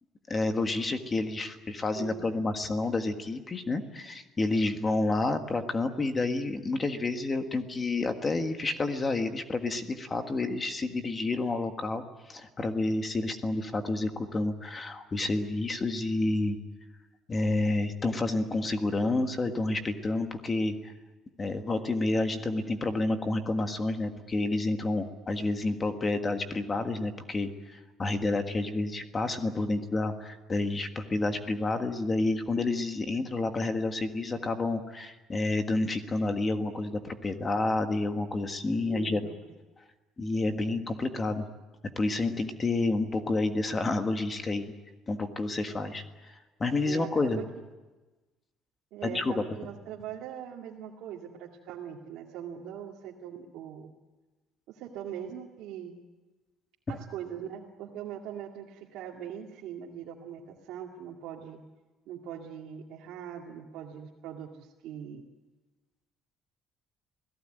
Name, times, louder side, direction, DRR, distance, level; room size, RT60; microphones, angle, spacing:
voice 1, 0.3-16.6 17.3-20.9 21.4-39.2 40.2-41.5 41.9-44.7 45.1-47.4 49.0-49.4 56.9-57.0, left 2 dB, 20° left, 7 dB, 1.5 m, -29 dB
voice 2, 1.9-2.5 38.9-39.2 39.4-39.5 46.9-47.4 48.9-53.9 54.7-55.9 56.9-61.6 62.1-65.2, right 9 dB, 70° right, -2 dB, 2.3 m, -41 dB
27.5 x 17.5 x 9.2 m, 1.2 s
cardioid pair, 165°, 0 cm